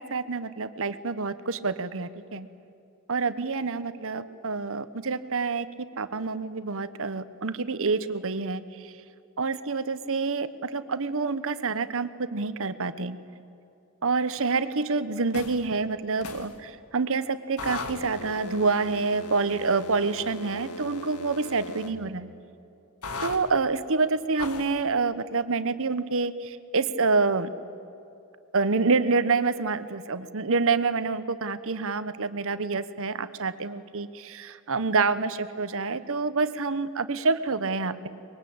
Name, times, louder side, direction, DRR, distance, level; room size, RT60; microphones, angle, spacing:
voice 1, 0.0-2.5 3.1-8.9 9.4-13.2 14.0-22.3 23.2-27.5 28.5-38.1, right 4 dB, 65° right, 13 dB, 1.1 m, -27 dB
sound 1, 15.3-15.7 16.2-16.5 17.6-21.9 23.0-23.4 24.4-24.8, left 2 dB, 85° left, 1.9 m, -38 dB
24.5 x 22.0 x 8.7 m, 2.8 s
head